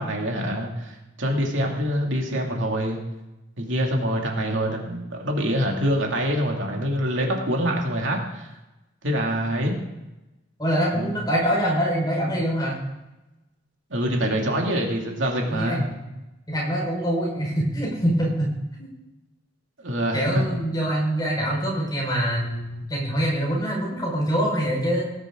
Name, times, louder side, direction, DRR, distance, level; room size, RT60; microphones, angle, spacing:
voice 1, 0.0-3.0 3.6-8.5 9.0-9.8 10.9-11.1 13.9-15.8 19.8-20.4, equal, 70° right, 0 dB, 2.5 m, -25 dB
voice 2, 10.6-12.8 15.5-16.0 16.5-18.9 20.1-25.1, equal, 20° left, -3 dB, 4.8 m, -24 dB
19.0 x 10.5 x 3.8 m, 0.99 s
head